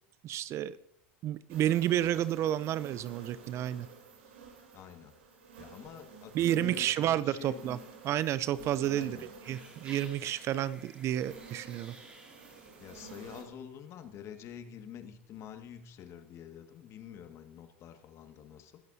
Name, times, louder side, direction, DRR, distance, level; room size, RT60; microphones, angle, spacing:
voice 1, 0.2-0.8 1.2-3.9 6.3-7.8 8.0-9.2 9.5-11.9, right 12 dB, 45° right, 17 dB, 0.6 m, -30 dB
sound 1, 1.5-13.4, right 5 dB, 75° right, 3.8 m, -51 dB
voice 2, 4.7-5.1 5.6-7.6 8.8-9.3 12.8-18.8, left 9 dB, 45° left, 6 dB, 2.0 m, -47 dB
sound 2, 9.4-13.8, right 2 dB, 15° right, 3.4 m, -55 dB
22.0 x 13.5 x 2.8 m, 0.74 s
hypercardioid pair, 80°, 6 cm